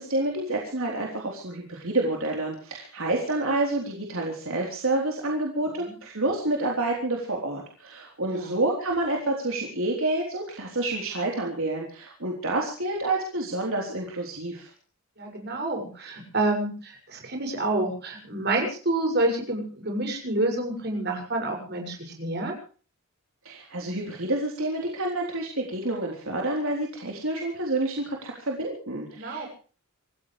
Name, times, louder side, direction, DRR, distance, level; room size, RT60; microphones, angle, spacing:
voice 1, 0.0-14.7 23.4-29.5, right 2 dB, 65° right, -1 dB, 3.9 m, -28 dB
voice 2, 15.2-22.5 29.1-29.5, right 2 dB, 50° right, 2 dB, 6.6 m, -28 dB
27.0 x 15.0 x 3.3 m, 0.40 s
head